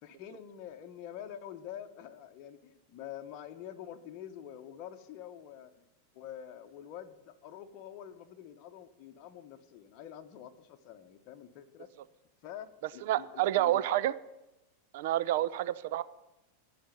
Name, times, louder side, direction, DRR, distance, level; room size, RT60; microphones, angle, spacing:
voice 1, 0.0-5.8 6.1-11.9 12.4-14.0, left 10 dB, 45° left, 6 dB, 1.2 m, -47 dB
voice 2, 13.1-14.1 14.9-16.0, right 13 dB, 65° right, 15 dB, 0.6 m, -28 dB
14.0 x 5.1 x 9.3 m, 0.97 s
hypercardioid pair, 125°, 0 cm